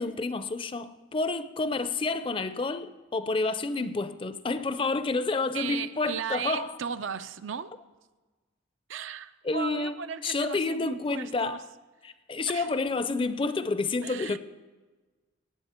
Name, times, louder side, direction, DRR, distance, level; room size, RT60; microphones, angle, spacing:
voice 1, 0.0-6.8 9.4-11.7 12.0-14.4, left 3 dB, 25° left, 0.5 m, -29 dB
voice 2, 5.5-7.7 8.9-11.6 12.5-12.7 14.0-14.4, right 7 dB, 80° right, 0.6 m, -36 dB
19.0 x 8.0 x 4.4 m
head